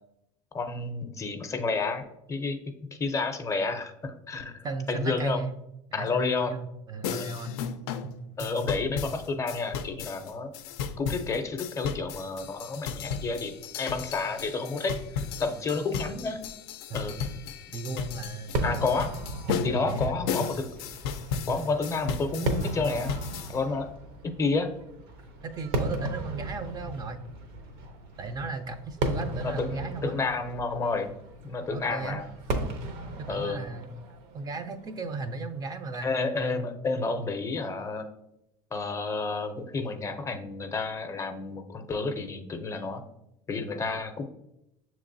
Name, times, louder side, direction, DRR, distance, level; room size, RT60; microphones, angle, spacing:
voice 1, 0.5-5.4 5.9-6.5 7.1-7.2 8.4-10.5 11.0-16.4 16.9-17.2 18.6-19.1 19.6-20.7 21.5-23.1 23.5-23.9 24.2-24.7 29.4-31.1 31.4-32.2 33.3-33.6 36.0-38.1 38.7-43.0 43.5-44.2, left 4 dB, 25° left, 7 dB, 0.5 m, -30 dB
voice 2, 4.6-5.6 5.9-7.6 8.0-8.1 16.9-17.1 17.7-18.6 19.5-20.5 21.5-21.6 25.4-27.2 28.2-30.2 31.7-32.2 33.2-34.0 34.3-36.1, right 3 dB, 35° right, 8 dB, 0.4 m, -35 dB
sound 1, 7.0-23.6, left 6 dB, 85° left, 0.4 m, -35 dB
Fireworks, 18.5-35.9, right 2 dB, 70° right, 0.7 m, -36 dB
sound 2, 19.4-33.5, right 1 dB, 90° right, 1.0 m, -51 dB
6.5 x 3.0 x 2.6 m, 0.83 s
supercardioid pair, 110°, 12 cm